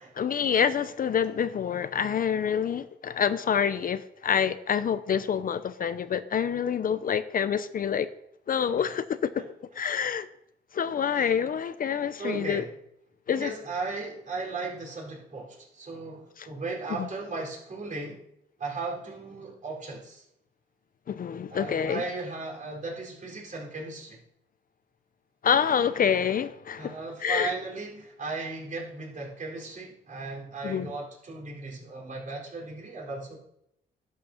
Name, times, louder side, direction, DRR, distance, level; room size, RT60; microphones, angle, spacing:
voice 1, 0.2-8.1 8.5-9.3 9.8-10.3 10.7-12.6 13.3-13.5 21.1-22.0 25.4-27.0 27.2-27.5 30.6-30.9, left 7 dB, 45° left, 13 dB, 0.6 m, -27 dB
voice 2, 12.2-12.7 13.3-18.2 18.6-20.2 21.5-24.2 26.8-33.4, right 3 dB, 40° right, -2 dB, 4.1 m, -36 dB
11.0 x 6.3 x 5.8 m, 0.75 s
cardioid pair, 90°, 20 cm